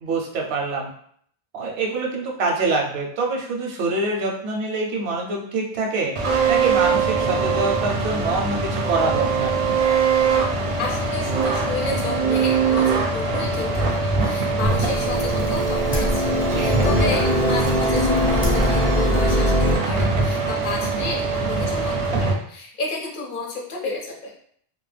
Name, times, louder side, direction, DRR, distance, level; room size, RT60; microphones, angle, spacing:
voice 1, 0.0-0.9 1.5-6.1 6.5-9.6 16.5-16.8, right 3 dB, 85° right, 0 dB, 0.9 m, -25 dB
sound 1, 6.2-22.3, right 4 dB, 50° right, 0.4 m, -22 dB
voice 2, 10.8-24.3, left 3 dB, 60° left, -1 dB, 0.7 m, -31 dB
sound 2, 14.6-19.8, left 1 dB, 15° left, 0.5 m, -22 dB
2.3 x 2.1 x 3.2 m, 0.63 s
omnidirectional pair, 1.1 m